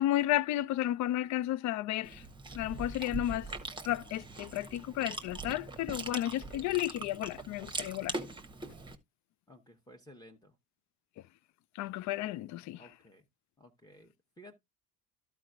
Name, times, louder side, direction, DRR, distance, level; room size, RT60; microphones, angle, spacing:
voice 1, 0.0-2.2 2.5-3.5 3.8-8.2 11.8-12.8, left 14 dB, 40° left, 0.5 m, -32 dB
Chewing mastication, 2.0-8.9, right 3 dB, 10° right, 1.2 m, -42 dB
voice 2, 9.5-10.5 12.8-13.3 13.6-14.5, left 1 dB, 10° left, 1.3 m, -55 dB
14.0 x 4.7 x 2.5 m
figure-of-eight pair, 55°, 45 cm